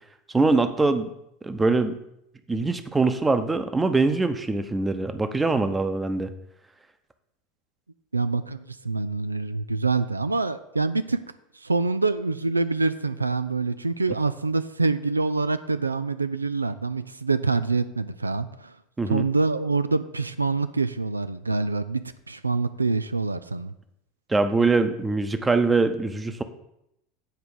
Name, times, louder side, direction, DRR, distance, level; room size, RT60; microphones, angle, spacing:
voice 1, 0.3-1.1 1.4-1.9 2.5-6.3 19.0-19.2 24.3-26.4, right 3 dB, 15° right, 9 dB, 0.8 m, -23 dB
voice 2, 8.1-11.2 11.6-18.7 19.1-22.0 22.3-23.7, right 3 dB, 90° right, 12 dB, 0.3 m, -25 dB
8.1 x 4.7 x 6.9 m, 0.80 s
figure-of-eight pair, 75°, 0 cm